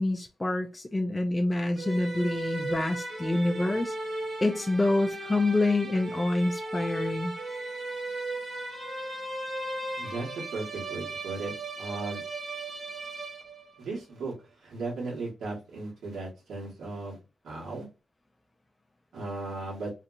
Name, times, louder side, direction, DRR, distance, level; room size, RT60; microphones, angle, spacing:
voice 1, 0.0-3.9 4.4-7.3, left 2 dB, 15° left, 3 dB, 0.4 m, -27 dB
sound 1, 1.8-13.8, right 2 dB, 35° right, 0.9 m, -36 dB
voice 2, 10.0-12.2 13.8-14.3 14.6-17.2 17.4-17.9 19.1-19.9, right 3 dB, 85° right, -4 dB, 1.3 m, -36 dB
2.8 x 2.5 x 2.4 m, 0.30 s
wide cardioid pair, 105°, 0 cm